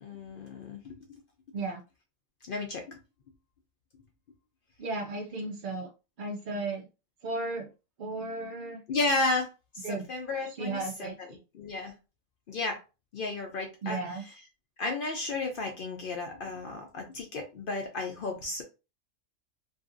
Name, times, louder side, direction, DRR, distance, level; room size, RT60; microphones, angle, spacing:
voice 1, 0.0-1.2 2.5-3.0 8.9-11.9 12.5-12.8 13.1-14.4 14.8-18.6, left 3 dB, 65° left, 3 dB, 0.5 m, -33 dB
voice 2, 4.8-5.9 6.2-6.9 7.2-7.7 8.0-8.8 9.8-10.0 10.6-11.1 13.8-14.2, right 3 dB, 60° right, 0 dB, 0.5 m, -34 dB
2.7 x 2.4 x 2.5 m, 0.30 s
omnidirectional pair, 1.4 m